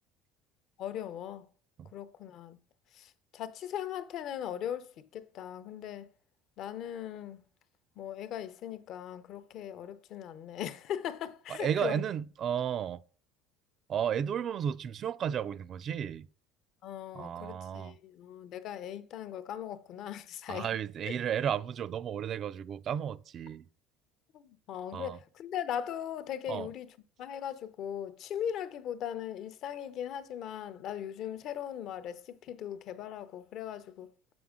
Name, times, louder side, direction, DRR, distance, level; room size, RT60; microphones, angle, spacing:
voice 1, 0.8-1.5 1.9-2.6 2.9-6.1 6.6-7.4 8.0-12.0 16.8-20.7 21.0-21.1 24.3-26.9 27.2-34.1, left 10 dB, 55° left, 0.6 m, -39 dB
voice 2, 11.5-13.0 13.9-16.3 17.1-17.9 20.5-23.6 24.9-25.2 26.5-26.7, right 9 dB, 40° right, 0.3 m, -33 dB
7.1 x 6.1 x 3.6 m
cardioid pair, 130°, 0 cm